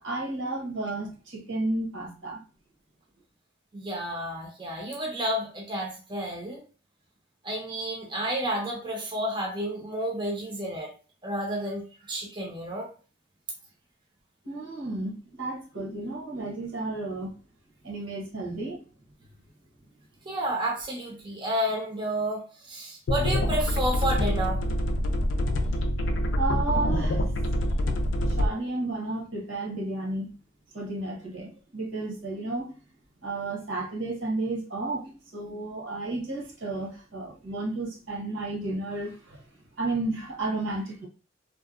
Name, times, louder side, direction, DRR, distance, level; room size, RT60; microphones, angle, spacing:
voice 1, 0.0-2.4 14.4-17.3 17.8-18.8 26.4-27.5 28.3-30.3 30.7-32.7 33.2-39.4 39.8-41.1, right 2 dB, 75° right, 0 dB, 0.9 m, -32 dB
voice 2, 3.7-6.6 7.4-10.9 11.2-12.9 20.3-24.6, right 1 dB, 25° right, -1 dB, 0.5 m, -31 dB
sound 1, 23.1-28.5, left 1 dB, 65° left, 0.4 m, -26 dB
2.7 x 2.1 x 2.4 m, 0.36 s
head